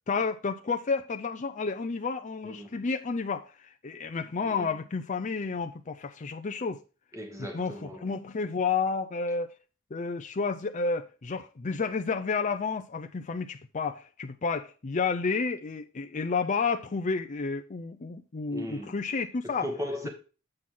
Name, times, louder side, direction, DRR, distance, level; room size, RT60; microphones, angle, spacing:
voice 1, 0.1-6.8 7.5-9.6 9.9-19.7, left 4 dB, 35° left, 0.5 m, -31 dB
voice 2, 2.4-2.8 4.4-4.7 7.1-8.1 18.5-19.1 19.4-20.1, equal, 15° right, 2.1 m, -38 dB
7.7 x 6.0 x 3.6 m
head